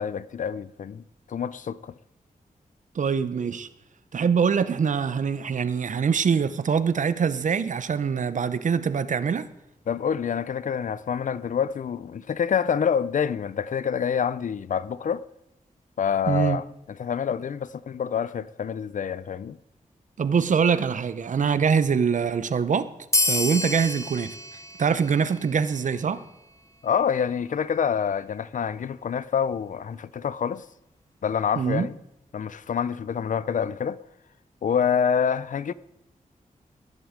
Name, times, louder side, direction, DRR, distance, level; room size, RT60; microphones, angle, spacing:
voice 1, 0.0-1.9 9.9-15.2 16.0-16.7 17.0-19.6 26.8-30.6 31.2-31.9 32.3-34.0 34.6-35.7, left 7 dB, 60° left, 0.5 m, -27 dB
voice 2, 2.9-3.7 4.1-9.5 16.3-16.6 20.2-22.9 23.2-24.4 24.8-26.2 31.6-31.9, right 6 dB, 60° right, 0.8 m, -24 dB
sound 1, 23.1-26.2, left 2 dB, 20° left, 1.0 m, -29 dB
18.0 x 11.0 x 5.1 m
wide cardioid pair, 130°, 14 cm